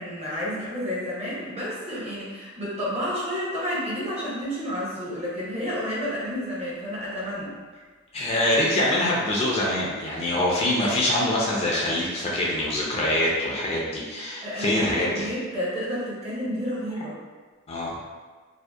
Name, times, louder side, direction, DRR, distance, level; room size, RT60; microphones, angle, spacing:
voice 1, 0.0-7.5 14.4-17.2, equal, 35° right, -6 dB, 0.7 m, -30 dB
voice 2, 8.1-15.3 17.7-17.9, left 1 dB, 30° left, -4 dB, 0.4 m, -24 dB
2.6 x 2.0 x 2.2 m, 1.4 s
head